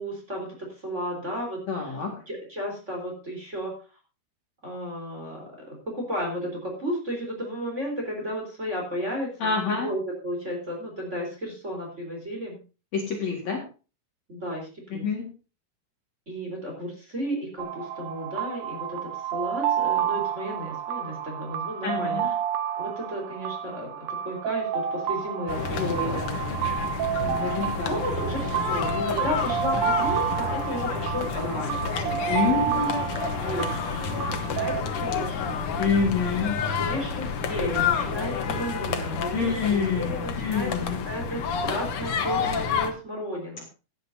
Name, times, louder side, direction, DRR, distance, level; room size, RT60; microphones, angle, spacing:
voice 1, 0.0-2.0 2.3-3.7 4.6-12.6 14.3-15.1 16.3-22.2 22.8-26.2 27.4-32.9 33.3-35.6 36.8-39.6 39.9-40.7 41.0-43.7, equal, 20° right, -1 dB, 3.8 m, -33 dB
voice 2, 1.7-2.1 9.4-9.9 12.9-13.6 14.9-15.3 21.8-22.3 25.7-26.6 27.2-27.9 28.5-28.6 28.9-29.1 32.3-33.0 35.8-36.6 39.3-41.0, left 5 dB, 55° left, 0 dB, 2.7 m, -27 dB
sound 1, 17.6-34.8, right 10 dB, 75° right, 2.6 m, -30 dB
sound 2, 25.5-42.9, left 5 dB, 80° left, 1.2 m, -29 dB
17.0 x 10.5 x 2.7 m, 0.33 s
omnidirectional pair, 4.4 m